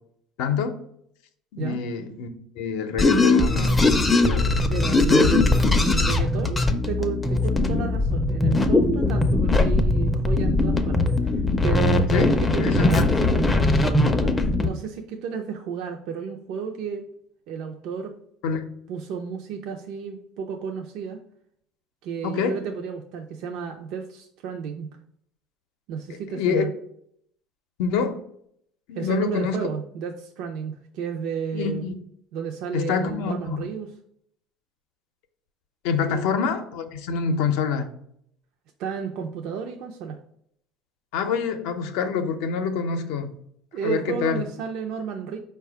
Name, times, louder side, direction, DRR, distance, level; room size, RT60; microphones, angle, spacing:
voice 1, 0.4-0.7 1.5-2.3 2.6-5.4 12.1-12.3 12.6-13.1 18.4-18.7 22.2-22.6 26.3-26.6 27.8-28.2 28.9-29.6 31.5-31.9 32.7-33.7 35.8-37.9 41.1-43.3 43.8-44.4, left 6 dB, 80° left, 7 dB, 0.5 m, -26 dB
sound 1, 3.0-14.7, left 2 dB, 15° left, 0.4 m, -20 dB
voice 2, 4.7-5.5 5.8-17.0 17.5-18.1 18.9-21.2 22.0-24.9 25.9-26.7 28.9-31.9 32.3-33.9 36.0-36.3 38.8-40.2 43.7-45.4, right 6 dB, 70° right, 3 dB, 0.4 m, -32 dB
4.9 x 2.2 x 4.6 m, 0.69 s
cardioid pair, 125°, 0 cm